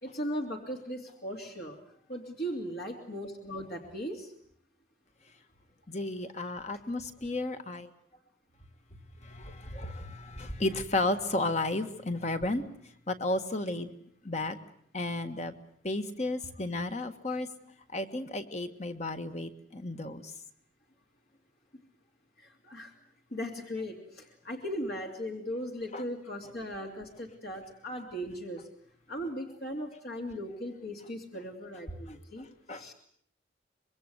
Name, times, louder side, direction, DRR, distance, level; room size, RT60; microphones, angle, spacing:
voice 1, 0.0-1.8 2.1-4.3 22.4-22.9 23.3-28.7 29.1-32.9, equal, 55° left, 1 dB, 2.9 m, -38 dB
voice 2, 5.9-7.9 9.2-12.6 13.1-13.9 14.2-14.6 14.9-15.5 15.8-17.5 17.9-20.3 25.9-26.0 32.4-32.9, left 2 dB, 35° left, 7 dB, 1.7 m, -33 dB
25.5 x 22.5 x 8.1 m, 0.63 s
head